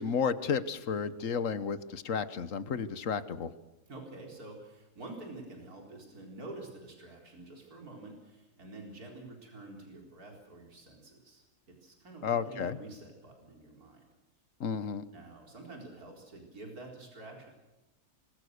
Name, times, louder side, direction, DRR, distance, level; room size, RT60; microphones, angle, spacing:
voice 1, 0.0-3.5 12.2-12.8 14.6-15.0, left 6 dB, 60° left, 14 dB, 1.4 m, -32 dB
voice 2, 3.9-14.0 15.1-17.5, right 2 dB, 75° right, 1 dB, 4.7 m, -48 dB
26.0 x 21.0 x 6.7 m, 1.0 s
omnidirectional pair, 1.6 m